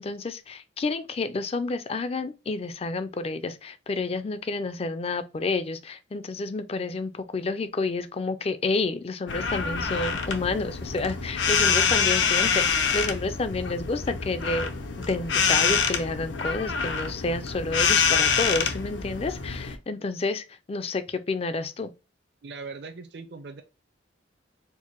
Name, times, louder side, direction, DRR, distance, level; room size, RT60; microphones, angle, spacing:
voice 1, 0.0-14.7 15.0-21.9, left 3 dB, 30° left, 0.4 m, -30 dB
sound 1, 9.3-19.8, left 6 dB, 70° left, 0.7 m, -26 dB
voice 2, 22.4-23.6, right 4 dB, 60° right, 0.6 m, -40 dB
4.5 x 2.1 x 3.0 m
head